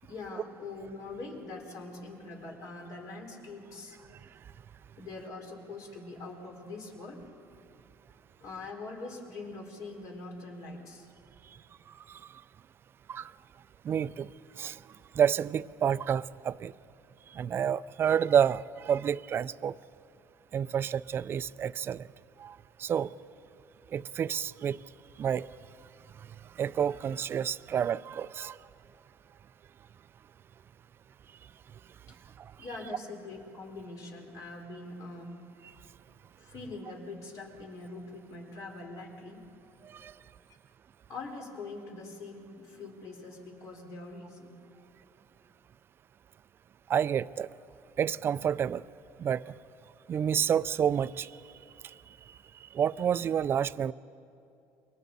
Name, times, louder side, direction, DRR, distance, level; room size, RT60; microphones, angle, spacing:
voice 1, 0.0-4.0 5.0-7.2 8.4-11.1 32.1-32.2 32.6-35.4 36.4-39.4 41.1-44.5, left 3 dB, 60° left, 1 dB, 4.3 m, -43 dB
voice 2, 13.8-14.3 14.6-14.8 15.2-16.7 17.3-19.7 20.5-22.1 22.4-22.5 22.8-23.1 23.9-24.8 25.2-25.5 26.6-28.6 39.9-40.1 46.9-47.5 48.0-48.8 49.2-49.5 50.1-51.3 52.7-53.9, right 8 dB, 35° right, 16 dB, 0.4 m, -29 dB
29.0 x 22.5 x 4.1 m, 2.7 s
cardioid pair, 120°, 7 cm